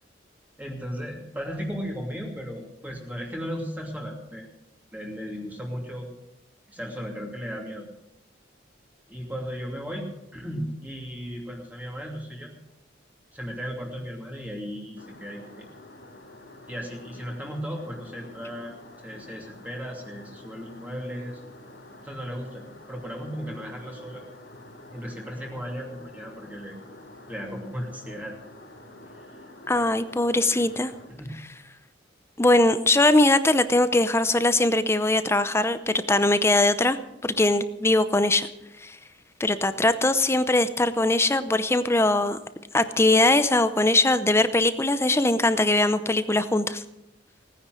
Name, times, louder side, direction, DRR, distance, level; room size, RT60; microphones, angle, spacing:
voice 1, 0.6-4.5 4.9-6.1 6.7-7.9 9.1-12.5 13.3-15.7 16.7-18.8 19.0-21.4 22.0-24.2 24.9-26.8 27.3-28.3 29.2-29.4 31.1-31.4, equal, 10° right, -1 dB, 2.7 m, -36 dB
sound 1, 15.0-31.1, left 1 dB, 65° left, 4.0 m, -48 dB
voice 2, 29.7-30.9 32.4-37.0 37.2-38.5 38.8-39.0 39.4-42.4 42.7-46.8, left 2 dB, 15° left, 12 dB, 0.6 m, -21 dB
17.5 x 10.0 x 6.3 m, 0.86 s
head